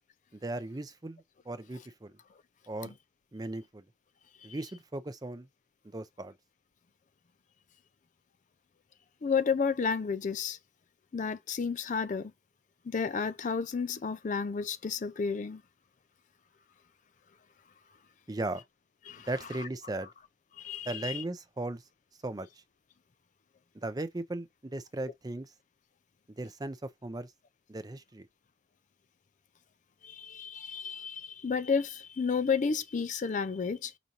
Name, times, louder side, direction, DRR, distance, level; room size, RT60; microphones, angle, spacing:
voice 1, 0.3-2.1 2.7-2.9 3.3-3.8 4.4-5.5 5.9-6.3 18.3-18.6 19.3-20.1 20.9-21.8 22.2-22.5 23.8-25.5 26.4-27.3 27.7-28.3, right 2 dB, 20° right, 0.5 m, -37 dB
voice 2, 9.2-10.6 11.1-12.3 12.8-15.6 19.1-19.3 19.6-19.7 20.6-21.2 30.0-33.9, left 5 dB, 40° left, 0.4 m, -31 dB
5.0 x 2.6 x 2.9 m
head